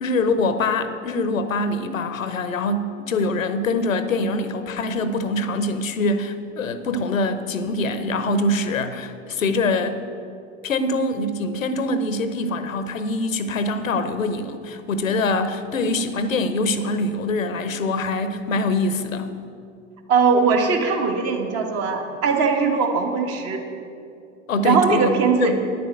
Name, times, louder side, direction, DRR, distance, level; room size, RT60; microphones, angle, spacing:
voice 1, 0.0-10.0 10.6-19.3 24.5-25.6, left 2 dB, 80° left, 11 dB, 0.9 m, -24 dB
voice 2, 20.1-23.6 24.6-25.5, right 5 dB, 40° right, 4 dB, 1.5 m, -20 dB
9.5 x 6.9 x 7.8 m, 2.5 s
figure-of-eight pair, 90°, 39 cm